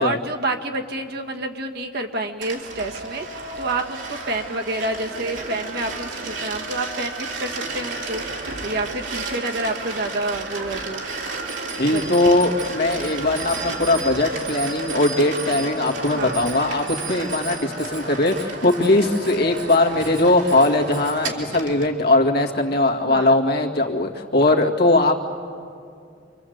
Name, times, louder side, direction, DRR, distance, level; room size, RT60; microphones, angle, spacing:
voice 1, 0.0-11.0 11.9-12.2 16.1-16.4 23.0-23.4, right 2 dB, 60° right, 3 dB, 1.8 m, -28 dB
sound 1, 2.4-21.9, right 2 dB, 80° right, 3.3 m, -32 dB
Bicycle bell, 11.5-21.2, right 5 dB, 40° right, 4.5 m, -38 dB
voice 2, 11.8-25.1, left 2 dB, 60° left, 1 dB, 2.2 m, -20 dB
28.0 x 24.5 x 8.0 m, 2.4 s
head